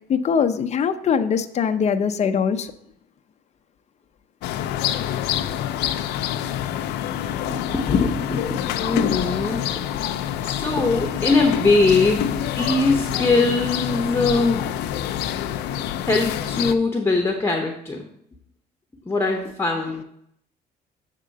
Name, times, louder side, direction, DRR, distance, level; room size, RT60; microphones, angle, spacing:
voice 1, 0.1-2.7 7.9-8.1 12.2-12.5, left 6 dB, 40° left, 0.6 m, -22 dB
sound 1, 4.4-16.8, left 11 dB, 85° left, 0.5 m, -26 dB
voice 2, 7.5-9.7 9.9-10.1 10.4-14.6 16.0-18.0 19.0-20.0, left 3 dB, 15° left, 0.9 m, -22 dB
7.4 x 3.7 x 6.6 m
cardioid pair, 110°, 17 cm